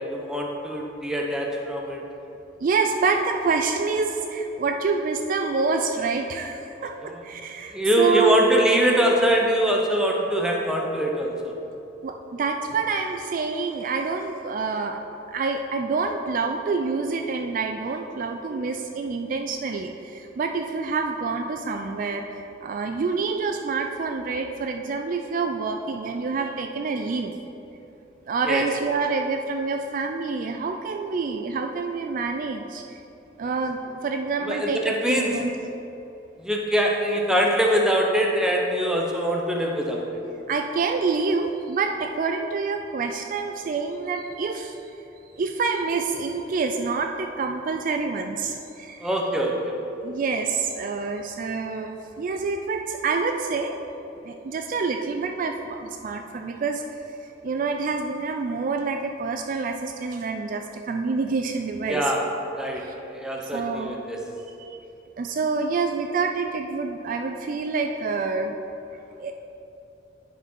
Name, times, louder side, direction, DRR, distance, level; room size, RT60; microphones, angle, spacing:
voice 1, 0.0-2.0 6.8-7.2 7.7-11.5 28.5-28.6 34.4-35.3 36.4-40.2 49.0-49.8 61.9-62.2 62.6-62.8 63.1-64.2, right 1 dB, 5° right, -1 dB, 0.8 m, -23 dB
voice 2, 2.6-8.4 12.0-15.0 15.3-27.4 28.3-33.0 33.4-35.5 40.5-44.8 45.4-49.1 50.0-53.8 54.2-56.8 57.4-62.0 62.8-62.9 63.5-63.9 64.6-64.8 65.2-68.6 68.9-69.3, right 4 dB, 45° right, 4 dB, 0.3 m, -27 dB
9.8 x 4.7 x 4.4 m, 2.9 s
head